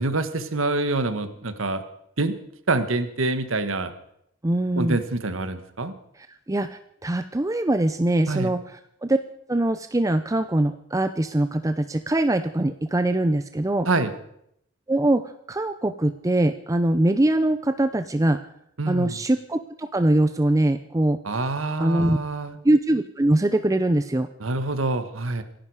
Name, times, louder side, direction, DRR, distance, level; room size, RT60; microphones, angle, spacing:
voice 1, 0.0-1.8 2.2-2.3 2.7-3.9 4.8-5.9 8.3-8.5 13.8-14.1 18.8-19.2 21.2-22.6 24.4-25.4, right 2 dB, 85° right, 10 dB, 1.5 m, -26 dB
voice 2, 4.4-5.0 6.5-9.2 9.5-13.9 14.9-18.4 18.9-21.2 21.8-22.2 22.6-24.3, right 1 dB, 15° right, 9 dB, 0.5 m, -22 dB
26.0 x 11.0 x 4.9 m, 0.74 s
head